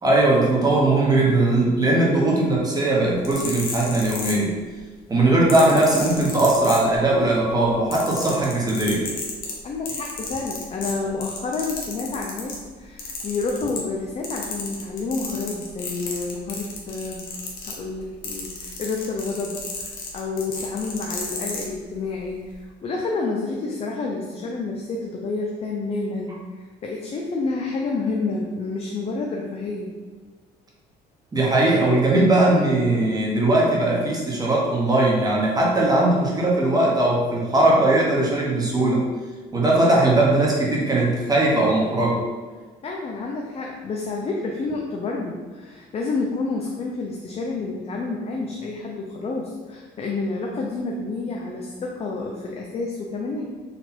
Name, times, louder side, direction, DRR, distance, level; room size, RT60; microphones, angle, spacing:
voice 1, 0.0-4.5 5.1-9.1 31.3-39.0 39.5-42.2, right 2 dB, 20° right, -4 dB, 1.2 m, -19 dB
sound 1, 3.1-4.8 5.5-7.2 7.6-12.6 13.0-14.0 14.2-21.7 22.4-22.6, left 4 dB, 60° left, 1.0 m, -33 dB
voice 2, 9.6-17.3 17.6-29.9 42.8-53.5, left 3 dB, 35° left, 0 dB, 0.6 m, -29 dB
4.2 x 2.6 x 4.3 m, 1.4 s
cardioid pair, 110°, 17 cm